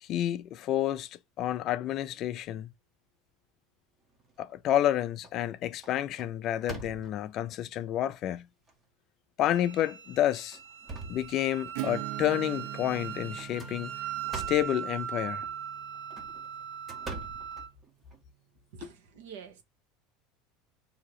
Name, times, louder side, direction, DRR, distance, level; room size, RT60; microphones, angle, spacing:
voice 1, 0.0-1.1 1.4-2.7 4.4-8.5 9.4-10.6 11.1-13.9 14.3-15.5, left 12 dB, 35° left, 0.4 m, -29 dB
sound 1, 4.2-4.8 5.2-5.5 5.8-7.4 8.1-8.2 8.7-8.8 9.7-9.9 10.4-11.8 13.4-14.8 15.9-18.2, right 3 dB, 15° right, 0.8 m, -44 dB
Wind instrument woodwind instrument, 9.5-17.7, right 9 dB, 75° right, 0.9 m, -39 dB
Acoustic guitar / Strum, 11.7-17.2, right 15 dB, 55° right, 0.4 m, -43 dB
voice 2, 18.7-19.6, right 7 dB, 90° right, 1.2 m, -46 dB
4.9 x 2.8 x 3.0 m
cardioid pair, 170°, 0 cm